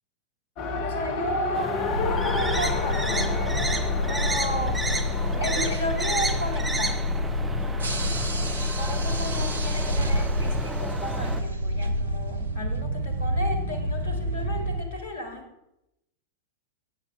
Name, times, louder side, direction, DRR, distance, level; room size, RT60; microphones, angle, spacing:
Race car auto racing, 0.6-5.7, left 4 dB, 40° left, 1.0 m, -30 dB
voice 1, 0.8-1.8 2.0-3.5 4.1-4.8 5.4-7.1 8.8-15.5, equal, 65° left, 5 dB, 1.8 m, -34 dB
sound 1, 1.5-11.4, right 2 dB, 10° right, 0.7 m, -32 dB
sound 2, 1.9-14.8, left 1 dB, 70° right, 0.8 m, -28 dB
8.5 x 7.0 x 4.7 m, 0.85 s
figure-of-eight pair, 90°, 0 cm